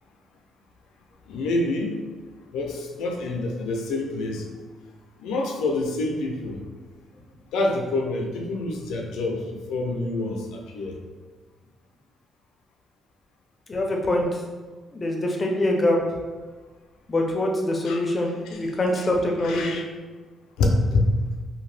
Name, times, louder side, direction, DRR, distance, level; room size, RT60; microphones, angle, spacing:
voice 1, 1.3-2.0 2.5-4.4 5.2-6.6 7.5-9.4 9.7-11.0 17.9-18.0 18.4-18.6 19.0-19.1 19.4-19.9 20.6-21.1, left 2 dB, 85° left, 2 dB, 0.4 m, -26 dB
voice 2, 13.7-14.4 14.9-16.0 17.1-19.8, left 1 dB, 30° left, 1 dB, 0.5 m, -24 dB
2.7 x 2.2 x 3.2 m, 1.3 s
cardioid pair, 90°, 0 cm